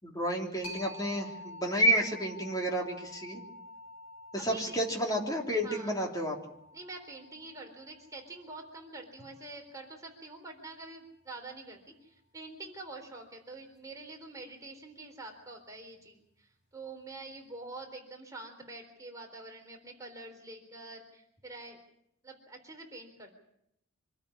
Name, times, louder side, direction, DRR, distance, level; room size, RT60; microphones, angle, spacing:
voice 1, 0.0-3.4 4.3-6.4, right 1 dB, 20° left, 1 dB, 3.4 m, -30 dB
sound 1, 0.6-10.0, left 1 dB, 85° left, 4.4 m, -49 dB
voice 2, 4.4-4.8 5.6-6.2 6.7-21.8 22.2-23.3, right 2 dB, 15° right, 2 dB, 3.8 m, -46 dB
25.5 x 13.0 x 9.9 m, 0.77 s
head